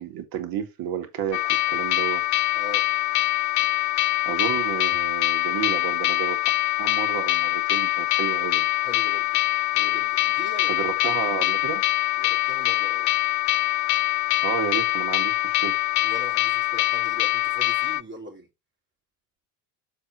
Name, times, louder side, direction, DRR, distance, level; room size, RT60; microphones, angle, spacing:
voice 1, 0.0-2.2 4.3-6.4 6.8-8.7 10.7-11.8 14.4-15.8, right 9 dB, 50° right, 2.1 m, -31 dB
sound 1, 1.3-18.0, left 17 dB, 40° left, 0.4 m, -24 dB
voice 2, 8.8-9.4 9.7-10.9 12.2-13.1 16.0-18.5, equal, 25° right, 2.9 m, -41 dB
7.1 x 4.5 x 4.7 m
hypercardioid pair, 75°, 45 cm